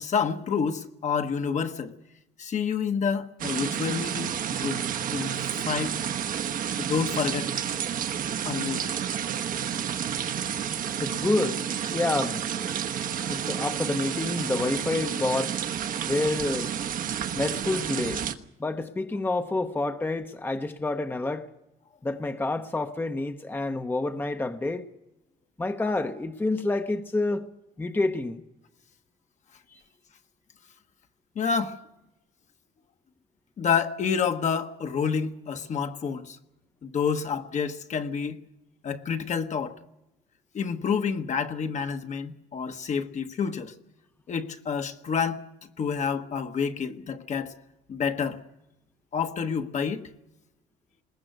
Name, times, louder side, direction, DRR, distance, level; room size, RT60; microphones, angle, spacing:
voice 1, 0.0-1.9 2.4-4.8 5.1-5.4 5.7-6.0 6.8-7.5 8.4-8.9 13.2-13.4 31.3-31.8 33.6-36.4 36.8-38.4 38.8-39.8 40.5-43.7 44.3-45.5 45.8-47.5 47.9-48.4 49.1-50.0, left 6 dB, 45° left, 1.3 m, -28 dB
sound 1, 3.4-18.3, right 9 dB, 55° right, 1.1 m, -30 dB
voice 2, 11.0-12.5 13.2-15.6 16.1-16.7 17.3-18.2 18.6-21.5 22.0-24.8 25.6-27.5 27.8-28.4 29.7-29.8, left 2 dB, 10° left, 0.9 m, -28 dB
21.0 x 18.5 x 8.0 m
cardioid pair, 110°, 17 cm